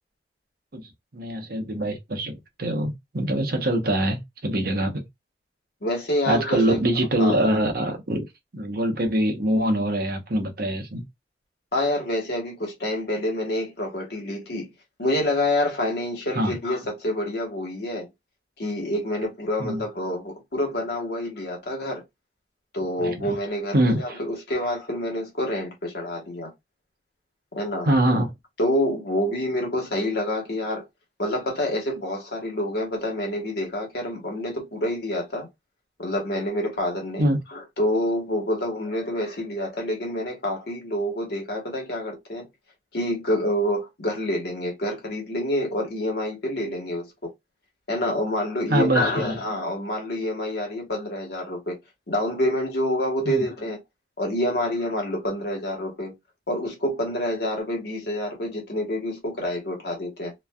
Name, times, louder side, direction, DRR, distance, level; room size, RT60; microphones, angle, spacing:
voice 1, 1.1-5.1 6.3-8.2 8.5-11.0 16.3-16.5 19.6-19.8 23.0-23.3 23.7-24.2 27.8-28.3 37.2-37.4 48.7-49.4 53.3-53.4, right 1 dB, 55° right, 0.8 m, -24 dB
voice 2, 5.8-6.8 7.2-7.6 11.7-14.7 15.0-18.1 18.6-22.0 22.7-26.5 27.5-27.9 28.6-30.8 31.2-35.5 36.0-42.5 42.9-47.3 47.9-51.8 52.1-53.8 54.2-56.1 56.5-60.3, left 1 dB, 60° left, 1.2 m, -27 dB
3.1 x 2.4 x 2.2 m
head